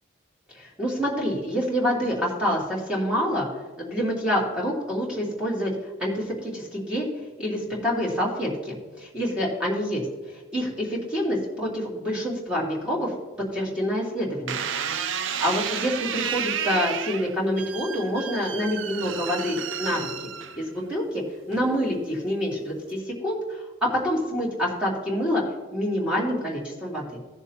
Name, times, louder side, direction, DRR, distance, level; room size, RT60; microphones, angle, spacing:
voice 1, 0.5-3.5 3.8-5.7 6.0-7.1 7.4-13.1 13.5-14.6 15.4-20.1 20.6-21.2 21.5-25.4 25.7-27.1, equal, 5° right, -5 dB, 2.7 m, -27 dB
sound 1, 14.5-20.9 21.5-22.0, right 8 dB, 85° right, 0.5 m, -31 dB
16.0 x 7.1 x 2.9 m, 1.3 s
head